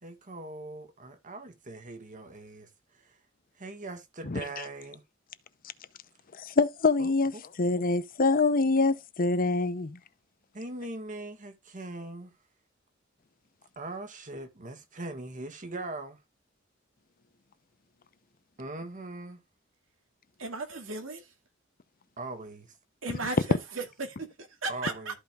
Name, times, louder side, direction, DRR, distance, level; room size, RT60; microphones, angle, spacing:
voice 1, 0.0-3.2 3.6-5.0 7.0-7.4 10.5-12.3 13.7-16.2 18.6-19.4 22.2-22.7 24.7-25.2, right 2 dB, 40° right, 1.6 m, -41 dB
voice 2, 6.4-7.3 7.6-10.0, left 3 dB, 45° left, 0.7 m, -25 dB
voice 3, 20.4-21.3 23.0-25.1, right 3 dB, 90° right, 2.1 m, -36 dB
14.0 x 5.2 x 2.4 m
head